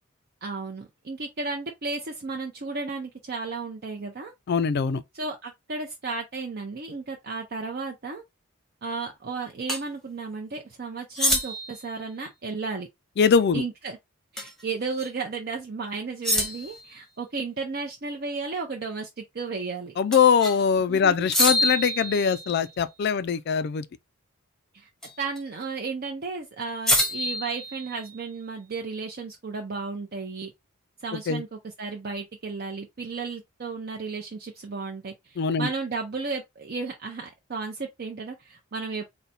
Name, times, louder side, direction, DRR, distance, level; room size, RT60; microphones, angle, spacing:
voice 1, 0.4-4.3 5.1-8.2 8.8-12.9 13.5-14.0 14.3-20.0 20.9-21.3 24.7-24.9 25.2-30.5 31.0-39.0, right 4 dB, 45° right, 0.6 m, -34 dB
voice 2, 4.5-5.0 13.2-13.6 20.0-23.8 31.3-31.4 35.4-35.7, left 6 dB, 50° left, 0.3 m, -22 dB
sound 1, 9.7-9.8 11.1-11.8 14.4-14.6 15.0-15.1 16.2-16.8 20.1-20.6 21.3-22.7 25.0-25.4 26.9-28.2, left 1 dB, ahead, 0.8 m, -26 dB
4.0 x 2.1 x 4.1 m
head